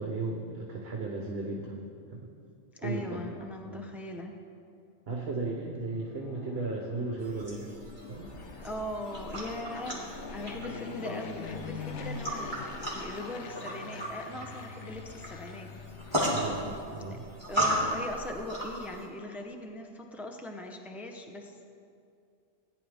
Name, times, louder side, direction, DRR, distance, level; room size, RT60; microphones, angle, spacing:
voice 1, 0.0-1.8 2.1-2.3 2.8-3.2 3.6-3.8 5.1-7.7 8.1-8.3 16.3-17.2, right 3 dB, 50° right, -1 dB, 1.3 m, -35 dB
voice 2, 2.8-4.4 8.6-15.7 17.1-17.2 17.4-21.6, left 1 dB, ahead, 3 dB, 0.6 m, -40 dB
Fixed-wing aircraft airplane, 5.9-17.0, left 5 dB, 65° left, 1.1 m, -44 dB
sound 1, 7.2-19.0, right 1 dB, 20° right, 2.9 m, -36 dB
18.0 x 10.5 x 3.5 m, 2.5 s
omnidirectional pair, 1.3 m